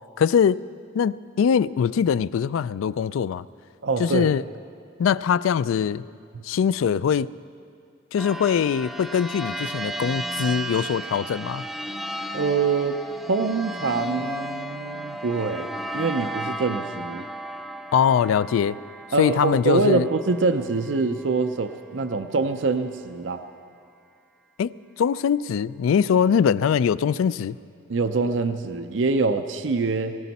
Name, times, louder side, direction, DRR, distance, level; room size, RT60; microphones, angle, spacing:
voice 1, 0.2-0.6 0.9-3.4 4.0-4.4 5.0-6.0 6.4-7.3 8.1-11.6 17.9-18.8 19.2-20.1 24.6-27.6, left 7 dB, 90° left, 18 dB, 0.3 m, -22 dB
voice 2, 3.8-4.3 6.3-6.4 12.3-13.0 13.3-15.7 15.9-17.3 19.1-23.4 27.9-30.2, right 4 dB, 65° right, 8 dB, 0.6 m, -24 dB
sound 1, 8.2-21.4, right 1 dB, ahead, 0.4 m, -34 dB
20.0 x 17.5 x 4.1 m, 2.3 s
head